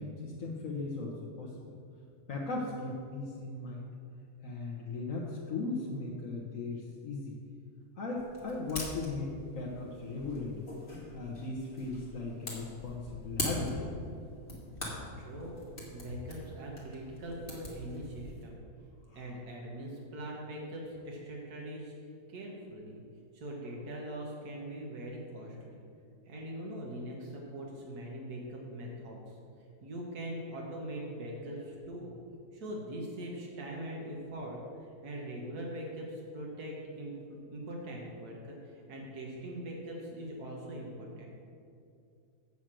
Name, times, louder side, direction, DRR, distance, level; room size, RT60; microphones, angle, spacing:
voice 1, 0.0-1.5 2.3-3.9 4.4-7.4 8.0-10.7 11.1-13.7 19.1-19.3, left 3 dB, 60° left, -3 dB, 1.5 m, -37 dB
sound 1, 8.2-18.5, left 1 dB, 35° left, 2.4 m, -42 dB
voice 2, 15.2-18.6 19.1-21.9 22.3-23.0 23.3-25.8 26.3-29.4 29.8-32.2 32.5-34.6 35.0-37.1 37.5-41.3, right 1 dB, 75° right, -2 dB, 1.9 m, -42 dB
8.1 x 6.4 x 7.5 m, 2.5 s
omnidirectional pair, 1.7 m